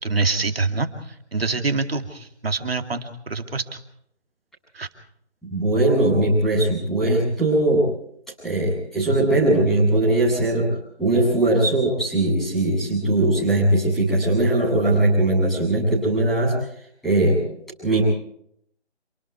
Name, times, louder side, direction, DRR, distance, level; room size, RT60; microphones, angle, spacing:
voice 1, 0.0-3.8 4.7-4.9, right 3 dB, 60° right, 6 dB, 2.6 m, -25 dB
voice 2, 5.5-7.8 8.4-10.7 11.0-16.6 17.0-17.4 17.8-18.0, right 2 dB, ahead, -9 dB, 7.9 m, -20 dB
28.0 x 20.5 x 4.8 m, 0.71 s
figure-of-eight pair, 165°, 34 cm